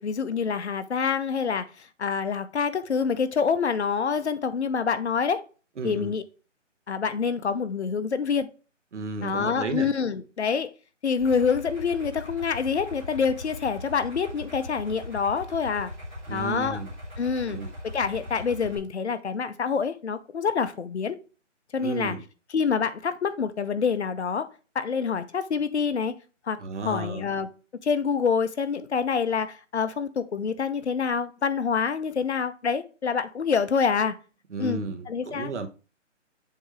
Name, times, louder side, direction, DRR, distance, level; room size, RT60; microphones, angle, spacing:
voice 1, 0.0-1.7 2.0-5.4 5.8-6.2 6.9-8.5 9.2-10.7 11.0-15.9 16.3-16.8 17.2-21.2 21.7-22.2 22.5-24.5 24.7-26.1 26.5-26.6 26.8-27.5 27.8-34.2 34.6-34.8 35.1-35.5, left 6 dB, 60° left, 0.8 m, -26 dB
voice 2, 5.8-6.1 8.9-9.9 16.3-16.9 17.5-17.7 21.8-22.2 26.6-27.3 34.5-35.7, right 3 dB, 65° right, 1.2 m, -33 dB
Idling, 11.2-18.8, left 1 dB, 5° right, 0.8 m, -40 dB
7.2 x 2.9 x 4.6 m
hypercardioid pair, 165°, 37 cm